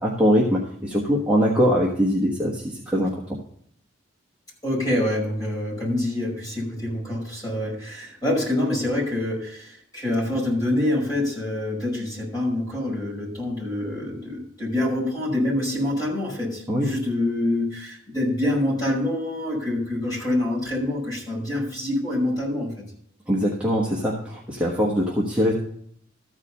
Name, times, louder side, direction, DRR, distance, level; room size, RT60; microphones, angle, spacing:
voice 1, 0.0-3.4 16.7-16.9 23.3-25.5, equal, 5° right, -4 dB, 1.2 m, -22 dB
voice 2, 4.6-22.7, left 1 dB, 20° left, -5 dB, 5.7 m, -26 dB
13.5 x 4.9 x 6.8 m, 0.64 s
head